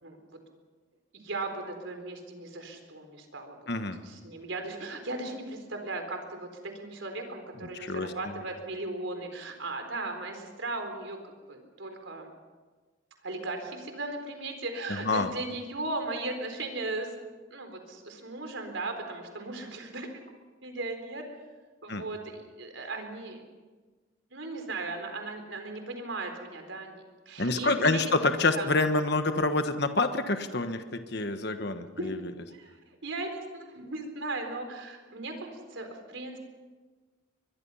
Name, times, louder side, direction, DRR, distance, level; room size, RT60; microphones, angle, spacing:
voice 1, 1.2-3.7 4.0-11.2 11.5-12.3 13.2-17.1 17.5-20.2 20.6-21.2 21.8-23.4 24.3-28.1 28.6-28.7 32.0-32.1 32.5-32.7 33.0-36.4, right 2 dB, 75° right, 5 dB, 4.0 m, -37 dB
voice 2, 3.7-4.0 7.7-8.4 14.9-15.3 21.9-22.0 27.4-32.2, left 2 dB, 55° left, 8 dB, 1.4 m, -27 dB
23.0 x 22.5 x 5.7 m, 1.3 s
head